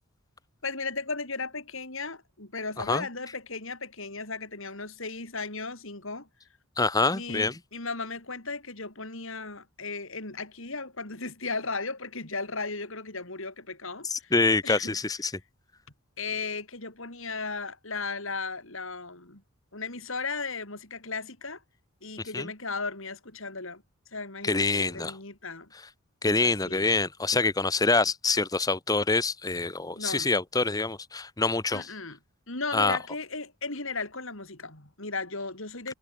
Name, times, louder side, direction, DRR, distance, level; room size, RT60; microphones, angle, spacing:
voice 1, 0.6-6.3 7.1-14.3 14.6-15.0 16.2-19.4 19.7-21.6 22.0-23.8 24.1-25.7 26.2-27.0 29.9-30.3 31.7-32.2 32.5-35.9, left 4 dB, 60° left, 4.5 m, -36 dB
voice 2, 6.8-7.5 14.1-15.3 22.3-22.5 24.4-25.1 26.2-31.9 32.7-33.0, left 3 dB, 15° left, 0.8 m, -26 dB
head